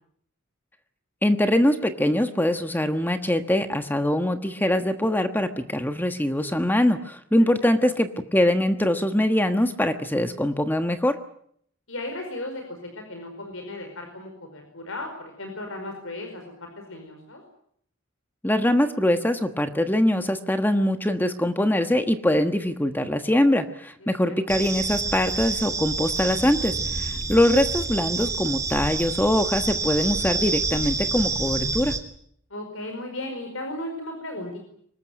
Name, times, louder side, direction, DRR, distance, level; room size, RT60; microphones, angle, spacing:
voice 1, 1.2-11.2 18.4-32.0, left 1 dB, 10° left, 7 dB, 1.2 m, -23 dB
voice 2, 11.9-17.4 24.0-24.6 32.5-34.6, left 1 dB, 85° left, 4 dB, 5.0 m, -36 dB
sound 1, 24.5-32.0, right 3 dB, 15° right, 2.4 m, -28 dB
24.5 x 20.0 x 9.2 m, 0.67 s
head